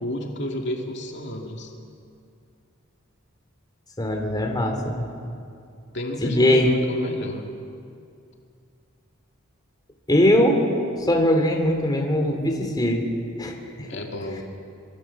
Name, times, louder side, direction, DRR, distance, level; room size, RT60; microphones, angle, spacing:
voice 1, 0.0-1.7 5.9-7.5 13.9-14.4, left 1 dB, 60° left, 1 dB, 2.3 m, -31 dB
voice 2, 4.0-5.1 6.2-6.7 10.1-10.6 11.0-13.0 13.4-13.9, left 1 dB, 20° left, 2 dB, 3.0 m, -21 dB
25.5 x 23.0 x 7.2 m, 2.5 s
head